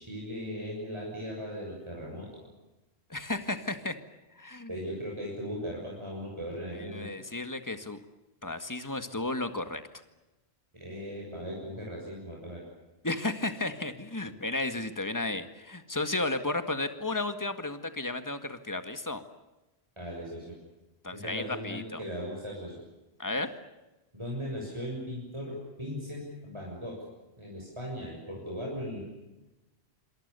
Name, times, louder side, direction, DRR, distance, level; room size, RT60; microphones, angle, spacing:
voice 1, 0.0-2.3 4.7-7.1 10.8-12.6 20.0-20.6 21.1-22.8 24.1-27.0 27.4-29.0, equal, 25° right, -2 dB, 7.0 m, -38 dB
voice 2, 3.1-4.0 4.4-4.7 6.7-8.0 8.4-9.8 13.0-19.2 21.0-22.0 23.2-23.5, left 2 dB, 15° left, 9 dB, 1.9 m, -33 dB
27.5 x 26.5 x 6.9 m, 1.0 s
omnidirectional pair, 1.1 m